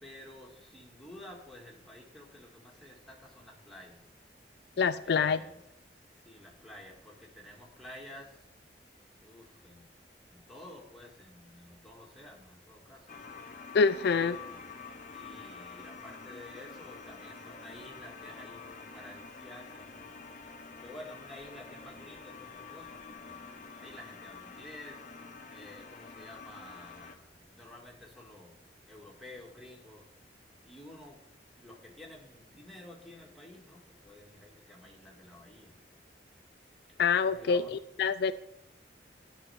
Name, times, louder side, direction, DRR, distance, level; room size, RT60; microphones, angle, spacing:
voice 1, 0.0-4.0 5.0-5.7 6.2-8.3 9.2-9.9 10.3-13.0 14.0-14.6 15.1-20.0 20.8-25.0 25.5-28.6 28.9-30.0 30.6-31.2 31.6-35.7 37.2-37.7, left 1 dB, ahead, -3 dB, 1.9 m, -51 dB
voice 2, 4.8-5.4 13.7-14.4 37.0-38.3, left 5 dB, 65° left, 12 dB, 0.4 m, -26 dB
sound 1, 13.1-27.2, left 5 dB, 45° left, 0.8 m, -47 dB
12.0 x 4.3 x 7.9 m, 0.81 s
head